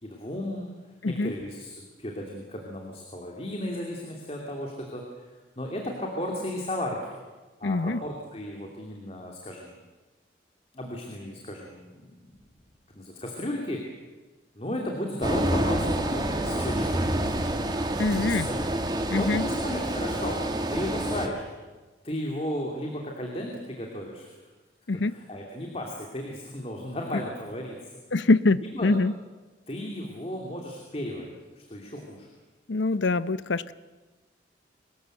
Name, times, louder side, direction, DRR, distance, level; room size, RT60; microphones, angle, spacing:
voice 1, 0.0-0.7 1.1-5.0 5.6-7.0 7.6-9.8 10.7-12.3 12.9-13.8 14.5-17.5 18.2-18.6 19.1-20.4 20.7-21.4 22.0-24.4 25.1-27.9 28.6-28.9 29.7-32.3, left 1 dB, 35° left, 0 dB, 2.8 m, -34 dB
voice 2, 7.6-8.0 18.0-18.5 19.1-19.5 24.9-25.1 28.1-29.1 32.7-33.7, left 3 dB, 85° left, 16 dB, 0.7 m, -24 dB
sound 1, 15.2-21.3, right 1 dB, 25° right, 1.8 m, -28 dB
24.5 x 20.0 x 7.9 m, 1.2 s
head